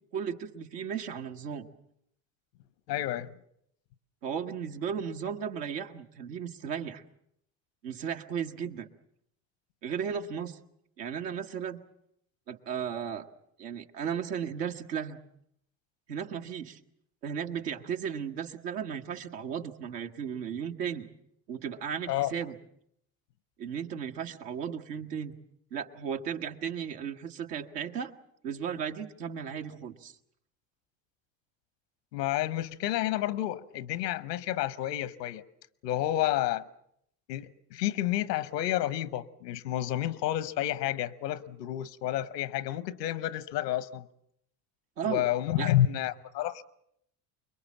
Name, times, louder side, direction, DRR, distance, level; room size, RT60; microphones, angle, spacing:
voice 1, 0.1-1.7 4.2-7.0 7.8-8.9 9.8-10.6 11.0-11.8 12.5-13.3 13.6-15.2 16.1-16.8 17.2-21.1 21.5-22.6 23.6-25.3 25.7-28.1 28.4-30.1 45.0-45.3 45.6-45.7, right 7 dB, 85° right, 1.5 m, -35 dB
voice 2, 2.9-3.3 22.1-22.3 32.1-35.4 35.8-36.6 37.3-44.1 45.0-46.6, left 13 dB, 90° left, 1.0 m, -30 dB
24.5 x 22.0 x 7.2 m
hypercardioid pair, 70°, 47 cm